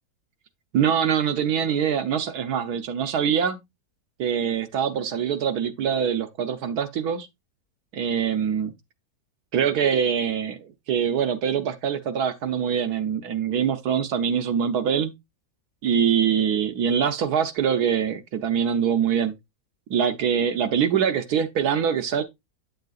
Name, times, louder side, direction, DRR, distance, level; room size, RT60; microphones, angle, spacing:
voice 1, 0.7-3.6 4.2-7.3 7.9-8.7 9.5-15.1 15.8-19.3 19.9-22.2, right 8 dB, 80° right, 1.4 m, -24 dB
8.5 x 6.6 x 2.4 m
omnidirectional pair, 1.6 m